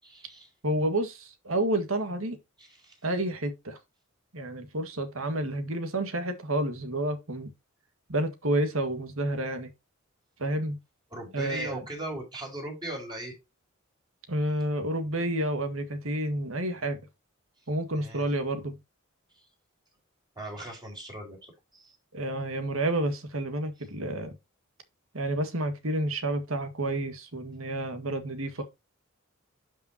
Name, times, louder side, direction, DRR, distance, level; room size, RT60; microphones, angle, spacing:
voice 1, 0.0-0.5 2.6-2.9 11.1-13.3 17.9-18.2 20.4-22.0, right 1 dB, 20° right, 4.7 m, -38 dB
voice 2, 0.6-2.4 3.0-3.8 4.3-7.5 8.1-9.7 10.4-10.8 11.3-11.8 14.3-17.0 17.7-18.8 22.1-24.4 25.1-28.6, right 1 dB, 85° right, 1.9 m, -30 dB
11.5 x 5.5 x 2.9 m
head